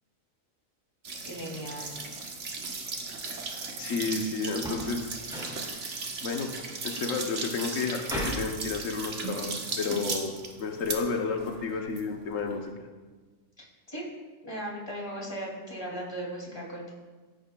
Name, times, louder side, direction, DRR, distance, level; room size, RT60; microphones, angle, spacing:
sound 1, 1.0-12.7, right 4 dB, 70° right, 1.5 m, -37 dB
voice 1, 1.2-1.9 13.6-14.0 14.4-16.9, right 1 dB, 20° left, -3 dB, 2.3 m, -37 dB
voice 2, 3.8-5.1 6.2-6.5 6.8-10.3 10.6-12.7, left 4 dB, 85° left, 3 dB, 1.2 m, -31 dB
sound 2, 4.5-4.9 5.2-5.6 8.1-8.5, equal, 5° right, 2.5 m, -35 dB
15.5 x 9.2 x 2.2 m, 1.4 s
omnidirectional pair, 1.3 m